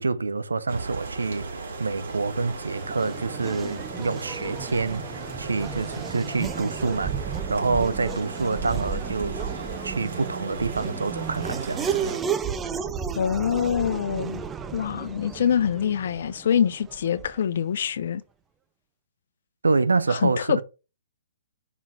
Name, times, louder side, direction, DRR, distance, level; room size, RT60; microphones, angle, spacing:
voice 1, 0.0-7.1 7.5-11.9 19.6-20.6, right 3 dB, 90° right, 0.9 m, -27 dB
sound 1, 0.7-12.2, right 3 dB, 70° right, 3.2 m, -37 dB
Race car auto racing / Accelerating revving vroom, 2.0-17.6, right 7 dB, 15° right, 0.6 m, -34 dB
voice 2, 13.2-14.4 14.7-18.2 20.1-20.6, left 8 dB, 60° left, 0.8 m, -25 dB
5.5 x 5.0 x 6.1 m
hypercardioid pair, 135°, 0 cm